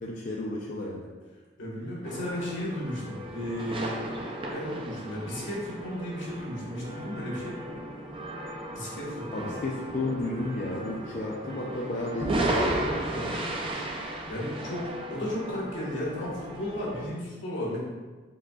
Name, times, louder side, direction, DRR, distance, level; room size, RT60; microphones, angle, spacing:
voice 1, 0.0-1.1 9.3-12.7, left 2 dB, 40° left, -3 dB, 0.4 m, -32 dB
voice 2, 1.6-4.0 4.5-7.6 8.7-9.5 13.1-13.3 14.3-17.8, left 1 dB, 85° left, -6 dB, 1.5 m, -34 dB
sound 1, 2.0-17.0, right 1 dB, 30° right, 0.4 m, -35 dB
4.8 x 3.7 x 2.4 m, 1.3 s
head